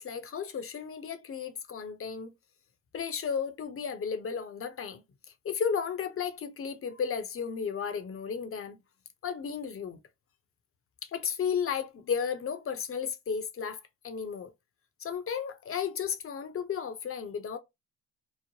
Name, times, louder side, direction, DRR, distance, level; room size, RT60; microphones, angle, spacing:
voice 1, 0.0-2.3 2.9-5.0 5.4-8.8 9.2-10.0 11.0-14.5 15.0-17.6, left 7 dB, 35° left, 0.6 m, -34 dB
3.1 x 2.0 x 2.7 m
hypercardioid pair, 50°, 39 cm